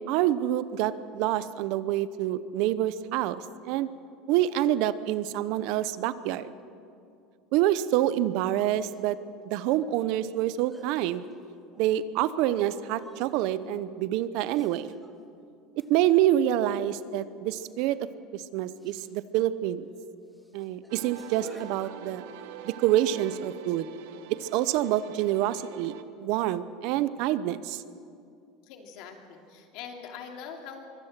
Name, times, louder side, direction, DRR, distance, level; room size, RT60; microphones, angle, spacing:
voice 1, 0.1-3.9 4.3-6.5 7.5-9.2 9.5-11.2 11.8-14.9 15.9-18.1 18.3-19.9 20.5-22.2 22.6-23.9 24.3-27.8, right 13 dB, 60° right, 15 dB, 0.8 m, -27 dB
sound 1, 8.7-9.0 10.0-10.1 10.5-12.0 12.5-13.7 14.6-15.2 15.8-16.2 17.5-17.7 18.1-18.3 18.8-19.1 19.7-19.9 20.3-22.5, equal, ahead, 1.8 m, -52 dB
sound 2, 20.9-26.0, right 9 dB, 75° right, 1.3 m, -45 dB
voice 2, 28.7-30.9, left 7 dB, 60° left, 3 dB, 2.8 m, -43 dB
23.5 x 17.0 x 7.5 m, 2.5 s
cardioid pair, 150°, 0 cm